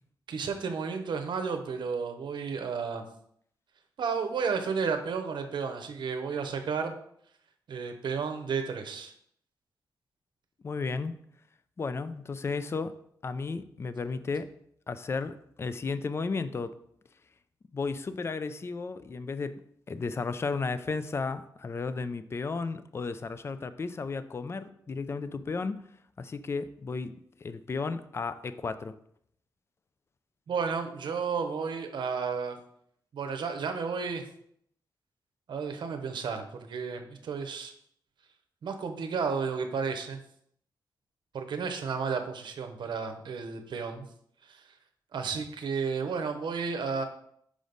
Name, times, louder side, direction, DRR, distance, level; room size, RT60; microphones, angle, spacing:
voice 1, 0.3-3.0 4.0-6.9 7.7-9.1 30.5-32.6 33.1-34.3 35.5-37.7 38.6-40.2 41.3-44.1 44.5-44.6 45.1-47.0, right 5 dB, 70° right, 6 dB, 0.8 m, -32 dB
voice 2, 10.6-11.2 11.8-12.9 13.2-14.5 14.9-16.7 17.7-19.6 19.9-25.8 26.2-27.1 27.4-28.9, left 4 dB, 30° left, 12 dB, 0.4 m, -34 dB
5.1 x 5.0 x 3.9 m, 0.68 s
cardioid pair, 100°, 8 cm